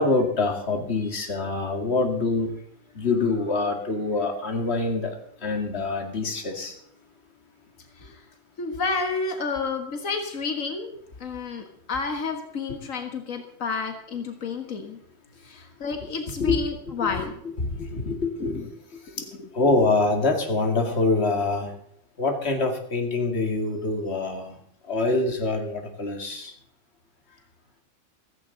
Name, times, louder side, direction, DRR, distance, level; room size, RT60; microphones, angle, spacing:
voice 1, 0.0-2.6 2.9-6.8 16.4-16.6 17.0-17.2 17.6-18.6 19.0-21.8 22.2-24.6 24.8-26.5, left 3 dB, 55° left, 3 dB, 2.4 m, -25 dB
voice 2, 8.6-15.0 15.4-17.3 18.4-18.7 19.2-19.5, left 4 dB, 85° left, 5 dB, 1.9 m, -30 dB
15.5 x 15.5 x 3.9 m, 0.68 s
omnidirectional pair, 1.3 m